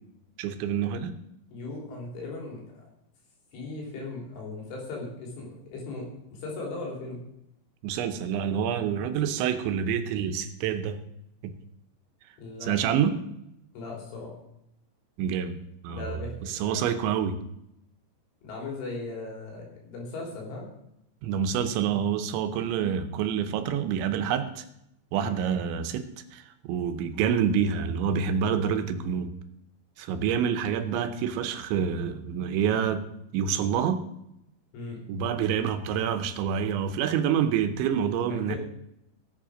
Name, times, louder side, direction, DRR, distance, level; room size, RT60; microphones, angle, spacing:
voice 1, 0.4-1.1 7.8-11.0 11.4-11.5 12.6-13.2 15.2-16.1 16.5-17.4 21.2-24.6 25.1-29.3 30.0-33.0 33.3-34.0 35.1-38.6, right 8 dB, 80° right, 9 dB, 3.1 m, -27 dB
voice 2, 1.5-2.8 3.5-7.2 12.4-12.8 13.7-14.4 15.9-16.8 18.4-20.7 25.2-25.4 34.7-35.0 38.3-38.6, left 3 dB, 85° left, -1 dB, 6.0 m, -38 dB
18.0 x 8.0 x 5.0 m, 0.79 s
omnidirectional pair, 5.4 m